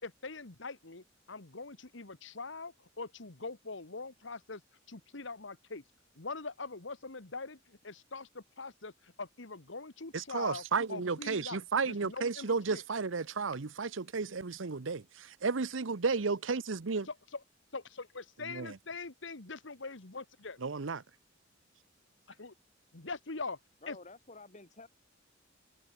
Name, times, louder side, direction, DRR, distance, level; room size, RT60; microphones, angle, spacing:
voice 1, 0.0-4.6 4.9-5.8 6.2-10.6 10.9-12.8 17.1-17.4 17.7-20.6 22.3-22.5 22.9-23.6 23.9-24.0, left 3 dB, 70° left, 1.8 m, -43 dB
voice 2, 10.1-17.1 18.5-18.7 20.6-21.0, right 4 dB, 80° right, 0.8 m, -33 dB
voice 3, 23.8-24.9, left 3 dB, 40° left, 7.0 m, -51 dB
head